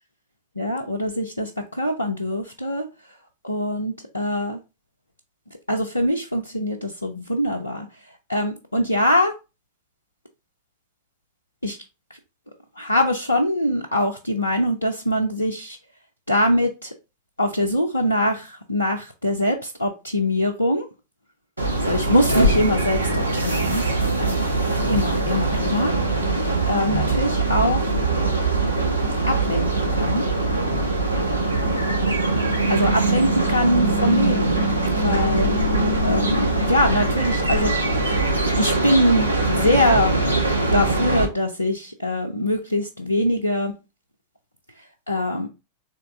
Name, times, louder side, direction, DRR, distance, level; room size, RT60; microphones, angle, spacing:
voice 1, 0.6-2.9 3.4-4.6 5.7-7.9 8.3-9.3 11.6-11.8 12.8-15.8 16.3-16.9 17.4-20.9 21.8-23.8 24.8-26.3 26.7-27.9 29.2-30.2 32.7-34.6 35.0-35.7 36.0-38.2 38.6-40.4 40.7-43.8 44.8-45.5, left 1 dB, 85° left, 0.5 m, -23 dB
sound 1, 21.6-41.3, right 2 dB, 80° right, 0.7 m, -22 dB
3.4 x 2.9 x 3.4 m
figure-of-eight pair, 90°, 0 cm